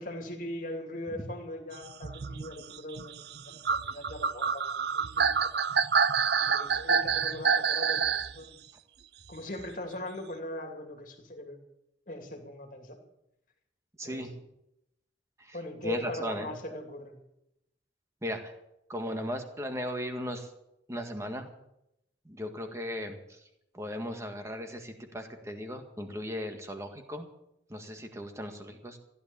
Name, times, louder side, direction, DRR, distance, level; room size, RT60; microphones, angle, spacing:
voice 1, 0.0-5.5 6.3-8.6 9.3-11.6 12.1-13.0 14.0-14.3 15.5-17.2, left 1 dB, 45° left, 4 dB, 2.6 m, -40 dB
sound 1, 1.9-8.3 9.6-9.7, right 6 dB, 60° right, 0.6 m, -27 dB
voice 2, 14.0-14.3 15.4-15.6 15.8-16.5 18.2-18.5 18.9-20.5 20.9-21.5 22.3-23.4 23.7-27.3 27.7-29.0, equal, 15° right, 5 dB, 1.8 m, -37 dB
15.5 x 11.0 x 7.0 m, 0.84 s
head